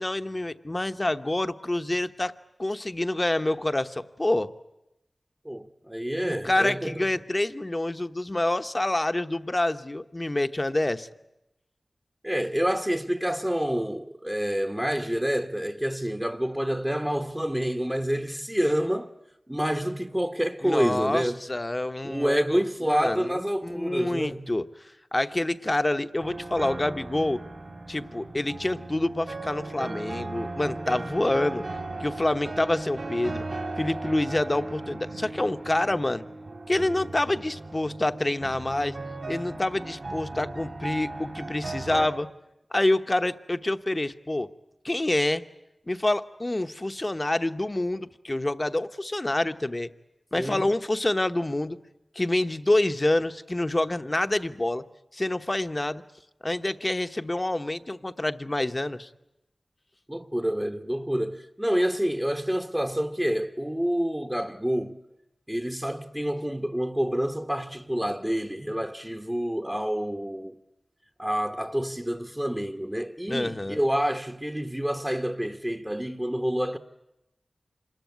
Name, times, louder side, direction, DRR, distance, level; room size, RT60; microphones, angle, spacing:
voice 1, 0.0-2.3 2.6-4.5 6.2-11.1 20.6-22.6 22.9-24.7 25.1-27.4 27.9-31.6 32.0-33.4 33.8-36.2 36.7-39.0 39.3-42.3 42.7-44.5 44.8-45.4 45.9-49.9 50.3-51.8 52.1-54.8 55.1-56.0 56.4-59.1 73.3-73.8, left 1 dB, 30° left, 1.0 m, -27 dB
voice 2, 5.4-7.1 12.2-19.2 19.5-21.4 22.0-24.5 50.3-50.6 60.1-65.0 65.5-70.6 71.2-76.8, equal, 10° right, 1.1 m, -28 dB
sound 1, 26.2-42.1, right 2 dB, 75° right, 3.4 m, -37 dB
26.5 x 21.0 x 9.4 m
wide cardioid pair, 50°, 0 cm